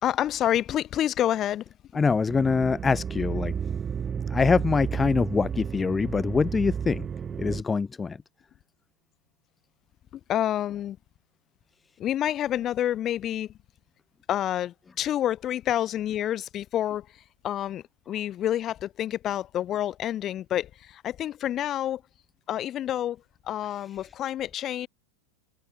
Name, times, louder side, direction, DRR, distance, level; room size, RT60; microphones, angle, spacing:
voice 1, 0.0-1.6 10.3-11.0 12.0-13.5 14.3-17.1 17.4-22.0 22.5-23.2 23.5-24.9, left 11 dB, 35° left, 3.6 m, -28 dB
voice 2, 1.9-3.5 4.3-7.1 7.4-8.2, left 5 dB, 15° left, 0.4 m, -24 dB
sound 1, 2.3-7.6, right 7 dB, 25° right, 1.4 m, -32 dB
hypercardioid pair, 110°, 0 cm